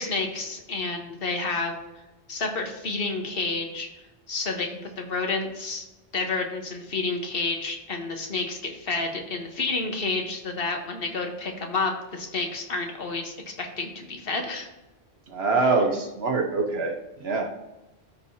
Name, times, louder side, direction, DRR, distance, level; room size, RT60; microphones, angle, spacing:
voice 1, 0.0-1.8 2.3-3.9 4.3-5.8 6.1-14.7 15.5-15.8, left 3 dB, 65° left, 3 dB, 1.4 m, -30 dB
voice 2, 15.3-16.9 17.2-17.6, right 3 dB, 75° right, 3 dB, 1.4 m, -24 dB
13.0 x 4.7 x 2.8 m, 1.0 s
omnidirectional pair, 1.1 m